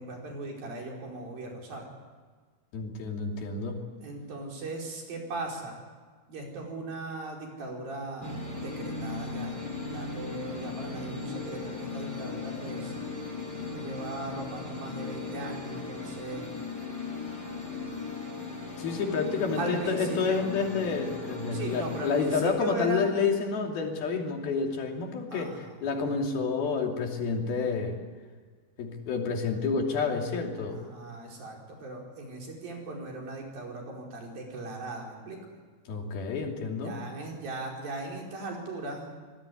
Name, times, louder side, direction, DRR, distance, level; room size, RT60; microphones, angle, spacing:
voice 1, 0.0-1.9 4.0-5.8 6.3-12.9 13.7-16.5 19.6-20.4 21.5-23.1 25.3-25.8 30.7-35.4 36.8-39.1, right 2 dB, 75° right, 0 dB, 6.6 m, -38 dB
voice 2, 2.7-3.8 18.8-28.0 28.8-30.8 35.9-37.0, left 5 dB, 90° left, 2 dB, 4.8 m, -29 dB
sound 1, 8.2-22.4, left 4 dB, 25° left, 6.3 m, -37 dB
25.5 x 19.0 x 10.0 m, 1.5 s
omnidirectional pair, 4.2 m